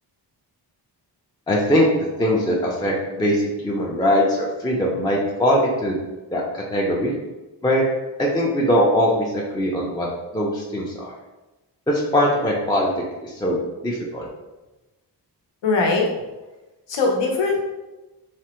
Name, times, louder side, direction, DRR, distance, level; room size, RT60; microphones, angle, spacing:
voice 1, 1.5-1.9 2.2-6.0 6.3-7.1 7.6-7.8 8.2-10.1 10.3-11.1 11.9-12.9 13.2-13.6 13.8-14.3, equal, 10° left, -3 dB, 0.4 m, -21 dB
voice 2, 15.6-16.1 16.9-17.6, left 3 dB, 80° left, 0 dB, 0.8 m, -20 dB
3.2 x 2.0 x 2.9 m, 1.1 s
wide cardioid pair, 100°, 42 cm